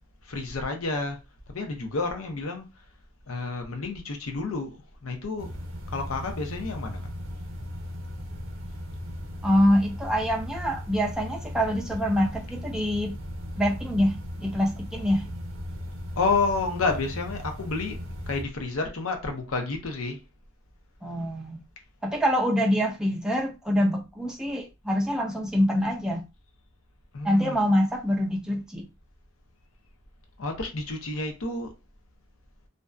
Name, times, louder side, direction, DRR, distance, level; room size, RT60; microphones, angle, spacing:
voice 1, 0.2-1.2 1.5-2.7 3.3-5.5 5.9-7.1 16.2-18.0 18.3-20.2 27.1-27.6 30.4-31.7, left 3 dB, 85° left, 0.7 m, -30 dB
sound 1, 5.4-18.4, equal, 85° right, 0.7 m, -37 dB
voice 2, 9.4-13.2 13.6-15.2 21.0-21.6 22.0-26.2 27.2-28.9, equal, 5° right, 0.4 m, -25 dB
2.5 x 2.2 x 2.3 m
head